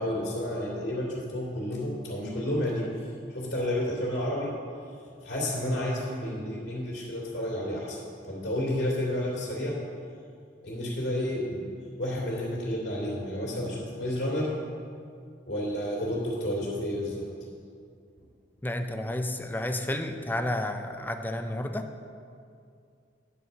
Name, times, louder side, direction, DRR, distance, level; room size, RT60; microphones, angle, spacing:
voice 1, 0.0-2.8 3.3-4.5 5.2-8.0 8.3-9.8 10.6-11.6 12.0-14.5 15.5-17.2, left 1 dB, 65° left, -4 dB, 2.6 m, -30 dB
voice 2, 18.6-21.9, left 1 dB, 10° left, 6 dB, 0.5 m, -31 dB
10.0 x 4.8 x 6.7 m, 2.3 s
head